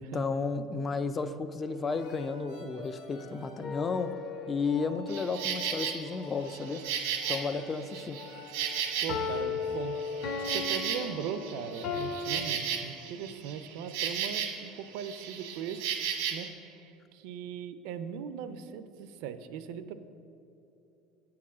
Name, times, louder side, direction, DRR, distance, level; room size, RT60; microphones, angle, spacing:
voice 1, 0.0-4.1 4.5-6.8 7.3-8.2, left 4 dB, 20° left, 10 dB, 0.3 m, -33 dB
sound 1, 1.6-12.8, left 3 dB, 75° left, 1.8 m, -48 dB
sound 2, 3.6-4.7 9.1-12.3, left 6 dB, 45° left, 0.7 m, -35 dB
Insect, 5.1-6.0 6.5-9.5 9.8-14.7 14.9-16.5, right 8 dB, 90° right, 1.1 m, -34 dB
voice 2, 9.0-10.0 10.4-15.9 16.3-19.9, right 8 dB, 65° right, 12 dB, 0.4 m, -39 dB
8.6 x 4.7 x 7.2 m, 2.8 s
cardioid pair, 165°, 0 cm